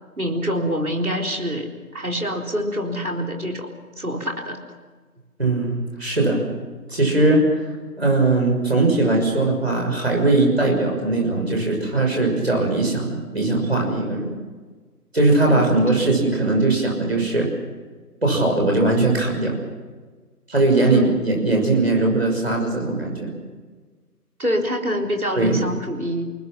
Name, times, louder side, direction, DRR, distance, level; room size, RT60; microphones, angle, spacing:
voice 1, 0.2-3.7 4.0-4.6 15.4-16.1 20.8-21.3 24.4-26.2, equal, 60° right, 1 dB, 4.1 m, -26 dB
voice 2, 5.4-5.7 6.0-6.4 6.9-7.5 8.0-14.3 15.1-17.5 18.2-19.6 20.5-23.3 25.4-25.6, right 2 dB, 40° right, 0 dB, 6.0 m, -20 dB
30.0 x 19.5 x 6.0 m, 1.4 s
figure-of-eight pair, 175°, 48 cm